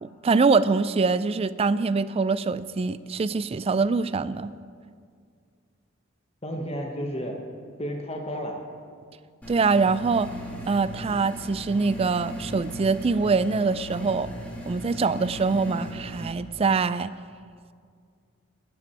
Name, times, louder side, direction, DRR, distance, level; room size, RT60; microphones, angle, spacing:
voice 1, 0.0-4.5 9.5-10.3 10.7-14.3 14.7-17.1, right 4 dB, 30° right, 15 dB, 0.3 m, -24 dB
voice 2, 6.4-7.4 7.8-8.6, equal, 30° left, 1 dB, 1.1 m, -32 dB
sound 1, 9.4-16.3, equal, 5° left, 2.0 m, -38 dB
14.5 x 6.0 x 9.7 m, 2.2 s
head